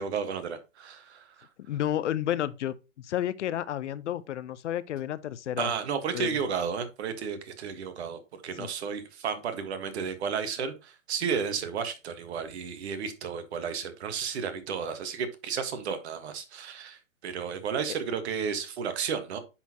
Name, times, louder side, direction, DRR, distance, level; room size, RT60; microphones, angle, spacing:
voice 1, 0.0-1.5 5.6-19.4, right 6 dB, 55° right, 1.5 m, -33 dB
voice 2, 1.7-5.7 6.1-6.4 8.5-8.7, left 11 dB, 60° left, 0.6 m, -31 dB
9.6 x 4.3 x 2.9 m
hypercardioid pair, 135°, 40 cm